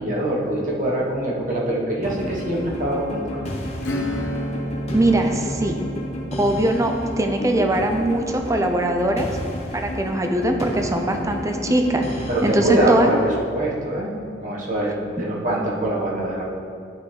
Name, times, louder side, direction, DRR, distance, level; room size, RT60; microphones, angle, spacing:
voice 1, 0.0-3.4 12.3-14.1 14.4-16.4, right 1 dB, 45° right, -4 dB, 1.4 m, -23 dB
sound 1, 2.0-13.4, equal, 35° left, 1.1 m, -32 dB
Acoustic guitar / Strum, 3.8-10.1, equal, 75° left, 1.0 m, -32 dB
voice 2, 4.9-5.8 6.4-9.3 9.7-13.1, right 1 dB, 15° right, 4 dB, 0.6 m, -21 dB
10.0 x 5.7 x 3.4 m, 2.4 s
head